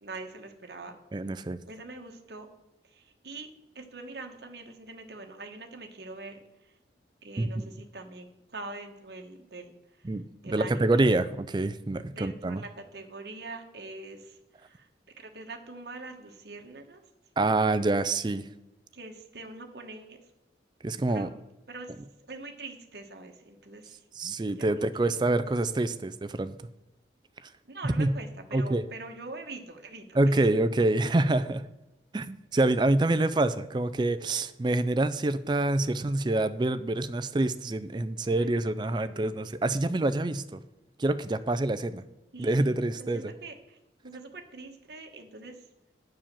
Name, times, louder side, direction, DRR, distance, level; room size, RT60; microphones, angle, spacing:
voice 1, 0.0-1.0 1.7-2.5 2.9-3.5 3.7-6.4 7.2-9.7 10.4-11.0 12.1-14.9 15.2-17.0 18.9-20.2 21.1-21.3 21.7-21.9 22.3-24.0 24.5-25.1 27.7-30.4 38.2-39.4 42.3-43.8 44.0-45.6, right 3 dB, 65° right, 4 dB, 1.2 m, -43 dB
voice 2, 1.1-1.6 7.4-7.7 10.0-12.6 17.4-18.5 20.8-21.3 24.1-26.5 27.8-28.1 28.5-28.8 30.1-31.6 32.1-40.6 41.0-42.0 42.4-43.3, right 2 dB, 25° right, 13 dB, 0.4 m, -26 dB
10.0 x 4.8 x 7.4 m, 0.99 s
head